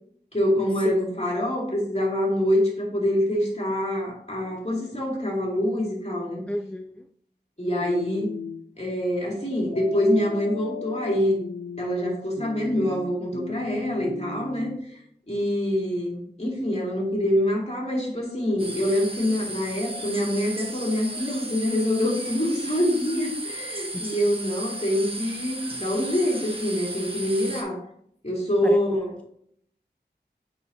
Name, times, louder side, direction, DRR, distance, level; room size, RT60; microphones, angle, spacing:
voice 1, 0.3-6.4 7.6-8.3 8.8-11.4 11.8-15.0 15.3-27.8 28.2-29.1, left 1 dB, 35° left, -3 dB, 2.4 m, -25 dB
voice 2, 6.5-7.0 23.9-24.1 28.6-29.0, equal, 5° left, 6 dB, 0.3 m, -32 dB
sound 1, 7.8-8.6 9.7-14.8, left 3 dB, 80° left, 0.7 m, -37 dB
sound 2, 18.6-27.6, right 1 dB, 30° right, 1.2 m, -35 dB
8.7 x 4.4 x 2.8 m, 0.69 s
wide cardioid pair, 45°, 18 cm